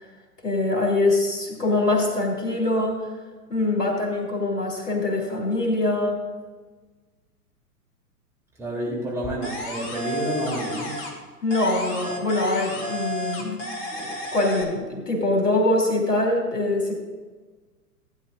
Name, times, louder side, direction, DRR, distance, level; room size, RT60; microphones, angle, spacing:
voice 1, 0.4-3.0 3.5-6.2 11.4-13.7 14.0-17.0, left 2 dB, 80° left, -1 dB, 3.0 m, -23 dB
voice 2, 8.6-11.0, right 1 dB, 5° right, -6 dB, 3.1 m, -29 dB
sound 1, 9.4-11.2 11.5-14.6, left 1 dB, 25° left, 1.8 m, -32 dB
16.0 x 9.6 x 2.5 m, 1.3 s
figure-of-eight pair, 110°, 47 cm